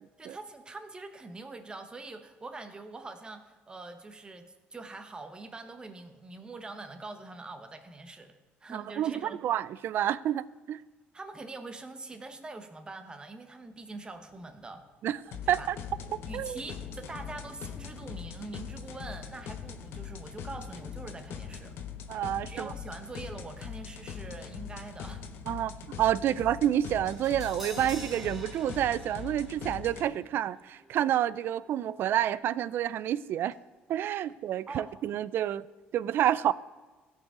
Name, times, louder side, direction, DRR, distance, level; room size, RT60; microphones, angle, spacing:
voice 1, 0.2-9.4 11.1-14.9 15.4-15.7 16.2-21.8 22.5-25.3 25.5-25.7 26.3-26.4 34.7-34.9, right 3 dB, 20° right, 1.0 m, -44 dB
voice 2, 8.7-10.8 15.0-15.2 15.5-15.8 16.3-16.6 22.1-22.7 25.5-25.7 26.0-33.5 33.9-35.7 35.9-36.5, right 11 dB, 65° right, 0.3 m, -29 dB
Thunder, 13.7-23.6, left 3 dB, 50° left, 1.3 m, -56 dB
sound 1, 15.3-30.1, left 7 dB, 70° left, 0.8 m, -42 dB
Crash cymbal, 27.1-33.2 33.5-33.6, right 1 dB, 5° right, 2.2 m, -49 dB
16.0 x 5.5 x 3.7 m
cardioid pair, 95°, 4 cm